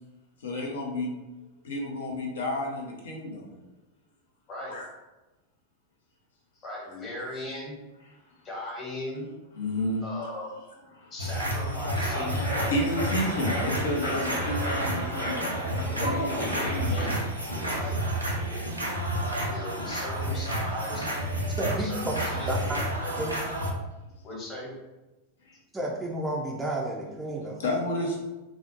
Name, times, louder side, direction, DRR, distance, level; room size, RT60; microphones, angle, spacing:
voice 1, 0.4-1.1 1.6-3.6 4.7-4.9 8.1-8.4 9.5-10.1 10.9-11.4 12.4-17.0 25.4-25.6 27.6-28.2, left 1 dB, 65° left, 0 dB, 0.5 m, -32 dB
voice 2, 6.6-7.8 8.4-9.3 10.0-10.6 11.1-12.5 16.9-17.1 17.5-18.0 19.2-21.1 21.6-22.6 23.0-23.1 24.2-24.7, left 1 dB, 30° left, -4 dB, 1.0 m, -38 dB
sound 1, 11.2-23.7, right 1 dB, 85° right, 0.4 m, -30 dB
sound 2, 11.6-17.8, equal, 80° left, 0.8 m, -34 dB
voice 3, 21.6-21.9 22.5-22.6 25.7-27.6, right 1 dB, 10° right, -3 dB, 0.4 m, -31 dB
2.3 x 2.0 x 2.8 m, 1.1 s
figure-of-eight pair, 90°, 0 cm